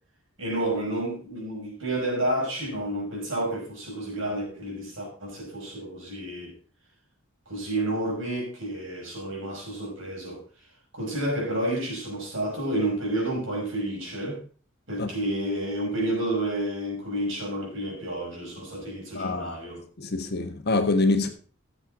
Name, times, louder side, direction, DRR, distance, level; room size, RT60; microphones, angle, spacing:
voice 1, 0.4-6.5 7.5-10.4 10.9-14.4 14.9-19.8, right 1 dB, 65° right, 5.7 m, -30 dB
voice 2, 19.1-19.6 20.0-21.3, left 2 dB, 50° left, 1.4 m, -25 dB
15.0 x 7.7 x 3.9 m
head